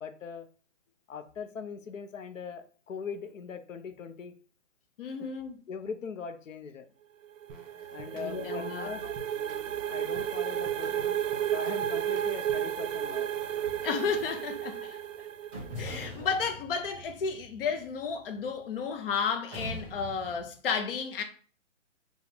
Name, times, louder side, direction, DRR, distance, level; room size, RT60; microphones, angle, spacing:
voice 1, 0.0-0.5 1.1-4.3 5.0-5.3 5.7-6.9 7.9-9.0 9.9-11.2 11.5-13.3, left 6 dB, 80° left, 0.8 m, -40 dB
voice 2, 5.0-5.6 8.2-9.0 13.8-15.0 15.8-21.2, left 6 dB, 50° left, 0.6 m, -32 dB
sound 1, 7.2-15.9, right 10 dB, 90° right, 0.5 m, -33 dB
sound 2, 7.5-12.8, right 2 dB, 35° right, 1.3 m, -51 dB
sound 3, 13.4-14.8 15.5-18.9 19.5-20.5, equal, 15° right, 1.8 m, -44 dB
4.7 x 2.3 x 3.5 m
hypercardioid pair, 160°, 38 cm